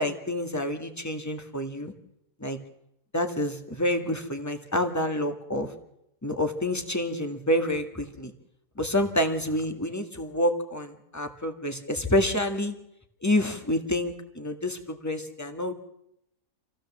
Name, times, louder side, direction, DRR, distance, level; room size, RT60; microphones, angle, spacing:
voice 1, 0.0-1.9 2.4-2.6 3.1-5.7 6.2-8.3 8.8-12.7 13.2-15.7, left 1 dB, 10° left, 6 dB, 1.9 m, -28 dB
26.5 x 16.0 x 7.5 m, 0.81 s
omnidirectional pair, 1.7 m